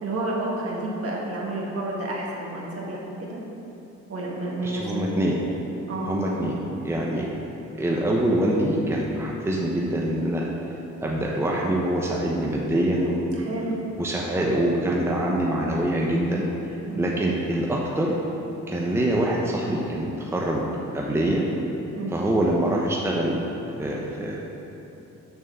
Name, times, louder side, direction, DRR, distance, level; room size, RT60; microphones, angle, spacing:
voice 1, 0.0-3.4 4.1-4.9 5.2-5.3 5.9-6.1 13.4-13.8 16.8-17.1 22.0-22.1, right 2 dB, 50° right, -4 dB, 1.7 m, -30 dB
voice 2, 4.6-5.4 6.1-6.6 6.8-7.3 7.7-10.4 11.0-13.3 14.0-16.5 17.0-18.1 18.7-20.7 20.9-21.4 22.1-23.4 23.8-24.4, right 1 dB, 10° right, -3 dB, 0.8 m, -24 dB
6.5 x 4.4 x 6.6 m, 3.0 s
cardioid pair, 90°, 30 cm